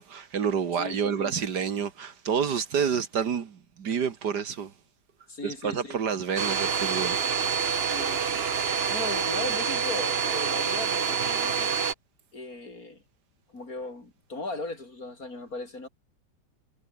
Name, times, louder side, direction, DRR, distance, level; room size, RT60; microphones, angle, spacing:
voice 1, 0.0-4.7 5.4-7.5, right 7 dB, 65° right, 2.1 m, -29 dB
voice 2, 0.8-1.3 5.3-6.0 7.8-8.2 8.9-11.7 12.3-13.0 13.5-15.9, left 2 dB, 50° left, 5.2 m, -37 dB
Domestic sounds home sounds, 6.4-11.9, right 6 dB, 40° right, 1.1 m, -27 dB
omnidirectional pair, 2.0 m